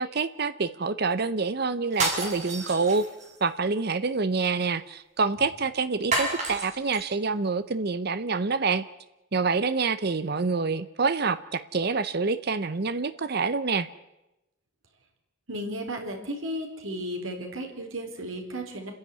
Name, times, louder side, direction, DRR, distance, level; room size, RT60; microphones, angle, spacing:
voice 1, 0.0-3.0 3.4-8.8 9.3-13.9, right 4 dB, 50° right, 13 dB, 0.7 m, -27 dB
sound 1, 1.9-3.4 6.1-7.0, right 2 dB, 35° right, 6.7 m, -30 dB
voice 2, 15.5-18.9, equal, 85° right, 3 dB, 4.3 m, -34 dB
29.5 x 10.5 x 9.6 m, 0.94 s
head